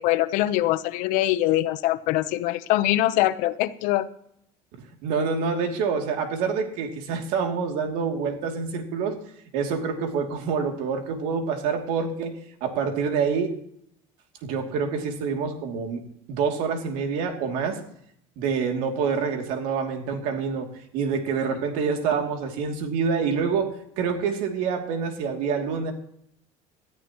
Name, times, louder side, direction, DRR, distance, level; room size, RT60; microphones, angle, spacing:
voice 1, 0.0-4.1, left 15 dB, 70° left, 14 dB, 0.9 m, -23 dB
voice 2, 5.0-9.2 9.5-12.3 12.6-13.6 14.4-16.0 16.3-17.8 18.4-20.7 20.9-25.9, right 5 dB, 75° right, 3 dB, 2.8 m, -26 dB
19.5 x 13.5 x 3.1 m, 0.70 s
cardioid pair, 155°, 14 cm